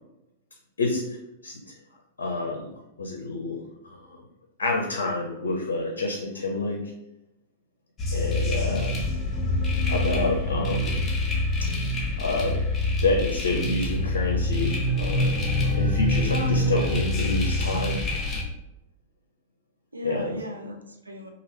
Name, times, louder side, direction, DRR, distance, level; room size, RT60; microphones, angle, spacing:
voice 1, 2.2-2.7 3.0-3.6 3.8-4.2 4.6-6.9 8.1-9.0 9.9-11.0 11.6-11.7 12.2-12.6 13.0-15.5 15.7-18.0 20.0-20.4, left 2 dB, 75° left, 2 dB, 0.4 m, -28 dB
sound 1, 8.0-18.4, left 1 dB, 20° left, 0.9 m, -26 dB
voice 2, 8.7-9.1 16.3-17.0 19.9-21.3, left 1 dB, 85° right, 3 dB, 0.5 m, -36 dB
3.0 x 2.4 x 3.1 m, 0.91 s
figure-of-eight pair, 95°, 0 cm